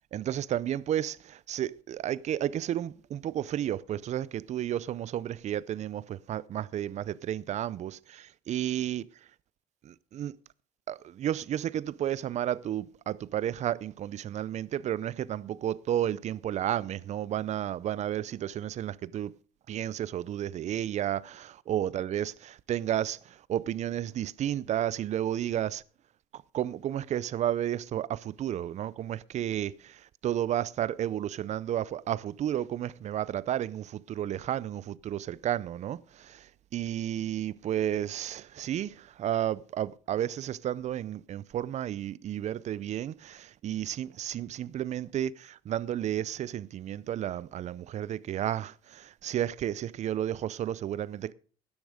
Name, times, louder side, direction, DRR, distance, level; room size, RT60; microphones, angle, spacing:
voice 1, 0.1-9.1 9.8-10.3 10.9-19.3 19.7-25.8 26.3-51.3, right 11 dB, 45° right, 0.6 m, -32 dB
13.0 x 10.5 x 5.0 m
cardioid pair, 125°, 16 cm